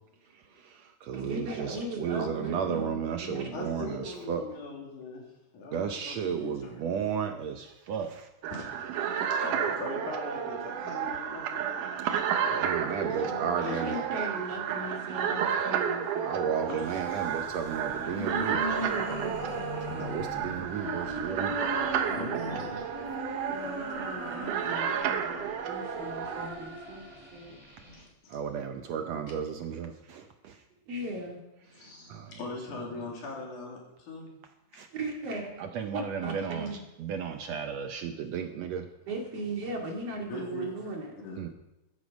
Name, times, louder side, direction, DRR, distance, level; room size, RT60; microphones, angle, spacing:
voice 1, 0.3-4.5 5.7-8.3 12.5-14.0 16.3-18.7 19.8-21.6 28.3-30.6 31.8-32.4 34.7-34.9 35.6-36.7 37.0-38.9 41.4-41.5, right 7 dB, 70° right, 6 dB, 1.8 m, -34 dB
voice 2, 1.1-3.5 13.2-16.7 23.5-27.6 30.9-31.4 34.9-35.5 35.9-36.8 39.1-41.1, right 2 dB, 55° right, 0 dB, 3.3 m, -38 dB
voice 3, 3.5-5.2 5.5-6.8 8.5-8.7 9.0-11.9 12.3-13.3 13.6-14.0 16.7-16.8 17.1-17.2 18.7-18.9 22.0-23.2 27.8-28.4 31.7-34.3 34.7-34.8 40.3-40.8 41.2-41.4, left 3 dB, 75° left, -1 dB, 4.4 m, -41 dB
sound 1, 8.4-26.5, right 8 dB, 85° right, 2.6 m, -32 dB
sound 2, 16.8-28.0, equal, 10° right, 4.3 m, -39 dB
14.0 x 12.0 x 5.2 m, 0.95 s
omnidirectional pair, 3.5 m